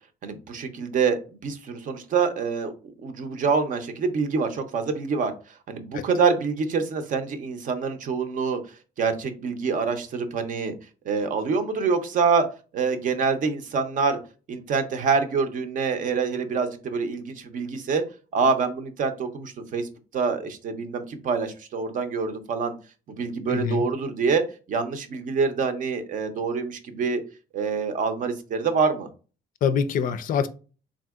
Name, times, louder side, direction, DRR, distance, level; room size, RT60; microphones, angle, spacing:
voice 1, 0.2-2.7 3.0-5.3 5.7-8.6 9.0-10.7 11.1-12.5 12.7-14.2 14.5-18.0 18.3-22.7 23.1-24.4 24.7-27.2 27.5-29.1, right 5 dB, 50° right, 0.6 m, -26 dB
voice 2, 23.5-23.8 29.6-30.5, left 7 dB, 55° left, 0.4 m, -24 dB
3.6 x 2.6 x 2.3 m
cardioid pair, 110°, 17 cm